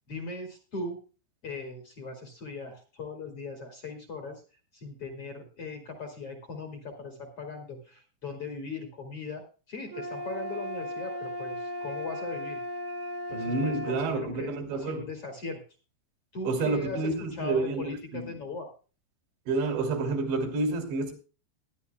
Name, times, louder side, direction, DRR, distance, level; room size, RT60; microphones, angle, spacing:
voice 1, 0.1-1.0 1.4-4.4 4.7-12.6 13.3-15.6 16.3-18.7, left 3 dB, 40° left, 2.5 m, -39 dB
sound 1, 9.9-14.0, left 1 dB, 60° right, 2.6 m, -36 dB
voice 2, 13.3-15.1 16.5-18.3 19.5-21.1, right 3 dB, 80° right, 5.3 m, -29 dB
21.0 x 11.0 x 2.3 m
omnidirectional pair, 5.0 m